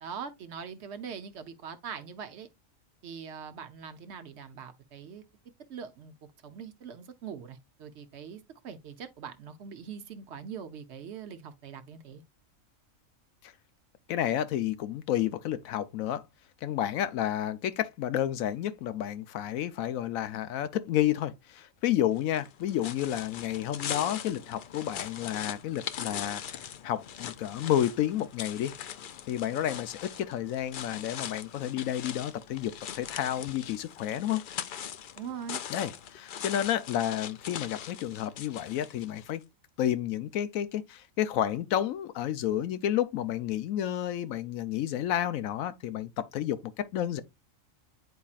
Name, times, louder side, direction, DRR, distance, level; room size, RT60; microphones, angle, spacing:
voice 1, 0.0-2.5 3.0-5.2 5.7-6.1 6.4-12.2 35.2-35.6, right 7 dB, 60° right, 0.9 m, -42 dB
voice 2, 14.1-16.2 16.6-28.7 29.3-34.4 35.7-39.4 39.8-47.2, left 11 dB, 85° left, 1.1 m, -31 dB
sound 1, 22.2-39.4, left 9 dB, 65° left, 0.5 m, -41 dB
9.3 x 4.2 x 2.4 m
omnidirectional pair, 1.4 m